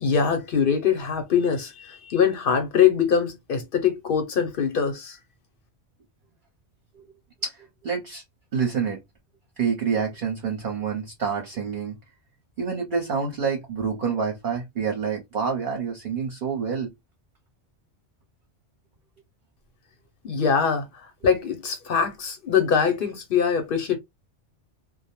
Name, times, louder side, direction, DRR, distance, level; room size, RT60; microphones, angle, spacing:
voice 1, 0.0-5.2 20.2-24.0, left 7 dB, 55° left, 0.7 m, -23 dB
voice 2, 7.4-8.2 8.5-9.0 9.6-11.9 12.6-16.9, right 6 dB, 50° right, 0.7 m, -27 dB
2.1 x 2.1 x 2.9 m
omnidirectional pair, 1.2 m